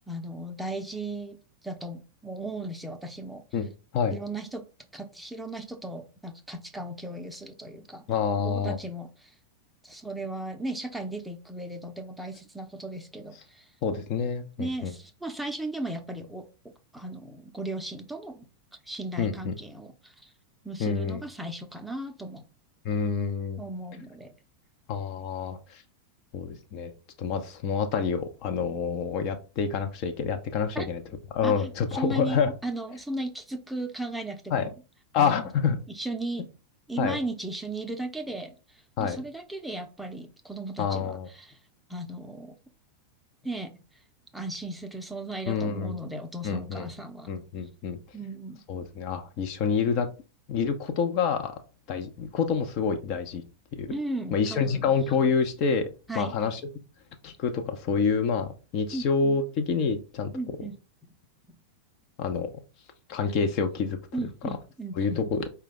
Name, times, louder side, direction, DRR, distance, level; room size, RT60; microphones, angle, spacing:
voice 1, 0.1-1.4 1.6-3.4 4.1-4.6 4.9-8.0 8.4-9.3 9.8-13.7 14.6-16.5 16.9-18.5 18.9-20.3 20.6-22.5 23.6-24.4 30.7-30.9 31.4-34.7 35.2-35.4 35.9-36.5 36.9-41.6 41.9-42.5 43.4-43.7 44.3-47.3 48.1-48.6 53.9-54.9 56.1-56.4 58.9-59.4 60.3-60.7 64.1-65.2, right 2 dB, 5° right, 5 dB, 0.6 m, -36 dB
voice 2, 3.5-4.2 8.1-8.8 13.8-14.9 19.2-19.6 20.8-21.2 22.8-23.6 24.9-25.8 26.3-26.9 27.2-31.0 31.3-32.5 34.5-34.7 35.1-35.8 37.0-37.2 39.0-39.2 40.8-41.3 45.5-45.9 46.4-46.9 47.3-48.0 48.7-50.1 50.5-51.5 51.9-53.4 53.7-53.9 54.3-55.9 56.1-56.6 57.2-60.3 62.2-62.5 63.1-64.0 65.0-65.5, left 6 dB, 40° left, 6 dB, 0.6 m, -27 dB
4.8 x 2.2 x 3.7 m, 0.33 s
figure-of-eight pair, 90°, 0 cm